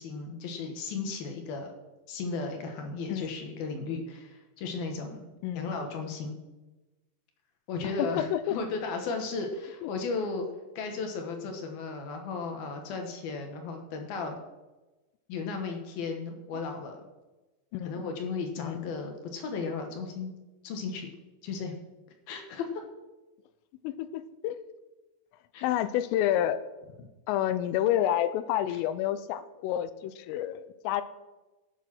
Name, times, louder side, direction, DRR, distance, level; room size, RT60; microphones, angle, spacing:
voice 1, 0.0-1.7 2.1-5.3 5.6-6.4 7.7-10.5 10.8-14.4 15.3-17.0 17.8-20.3 20.6-21.1 21.4-21.7 22.3-22.8 25.5-25.7, left 4 dB, 65° left, 4 dB, 2.6 m, -35 dB
voice 2, 8.0-8.6 9.8-9.9 17.7-18.1 18.6-18.9 23.8-24.6 25.6-26.6 27.3-31.0, left 12 dB, 85° left, 13 dB, 3.2 m, -29 dB
18.0 x 7.3 x 6.0 m, 1.1 s
omnidirectional pair, 6.0 m